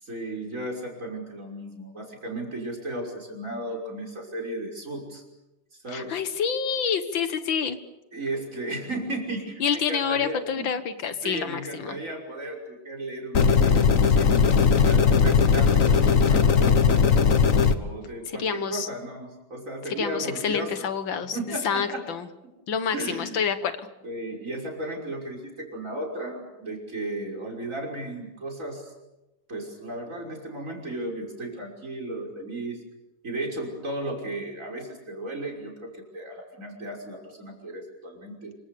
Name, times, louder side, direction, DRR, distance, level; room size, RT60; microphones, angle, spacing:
voice 1, 0.0-5.2 5.8-6.2 8.1-10.7 11.2-14.4 14.8-17.1 17.7-20.7 21.2-22.0 22.9-23.4 24.0-28.9 29.5-32.8 33.2-38.5, right 1 dB, 40° right, 0 dB, 6.2 m, -35 dB
voice 2, 5.9-7.8 9.6-12.0 18.3-18.9 19.9-22.3 22.7-23.8, left 7 dB, 90° left, 10 dB, 2.3 m, -28 dB
sound 1, 13.3-17.7, left 6 dB, 50° left, 1.5 m, -18 dB
27.0 x 25.0 x 6.9 m, 1.0 s
omnidirectional pair, 2.0 m